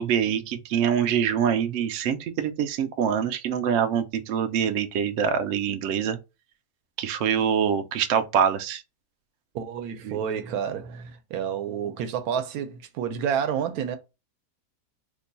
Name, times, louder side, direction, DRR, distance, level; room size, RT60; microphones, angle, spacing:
voice 1, 0.0-6.2 7.0-8.8 10.0-10.2, right 8 dB, 65° right, 0.8 m, -25 dB
voice 2, 9.5-14.0, right 8 dB, 85° right, 1.1 m, -29 dB
2.9 x 2.2 x 3.9 m
omnidirectional pair, 1.5 m